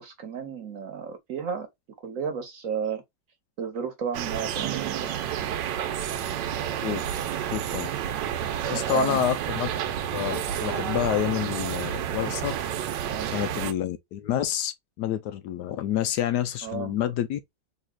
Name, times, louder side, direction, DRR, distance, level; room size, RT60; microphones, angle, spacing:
voice 1, 0.0-1.7 2.0-3.0 3.6-4.9 8.7-9.2 13.0-13.3 16.6-17.0, right 7 dB, 55° right, 1.1 m, -32 dB
sound 1, 4.1-13.7, right 9 dB, 80° right, 1.3 m, -30 dB
voice 2, 7.5-7.9 8.7-9.7 10.1-12.5 13.3-17.4, left 11 dB, 75° left, 1.1 m, -28 dB
4.0 x 2.7 x 2.2 m
omnidirectional pair, 2.0 m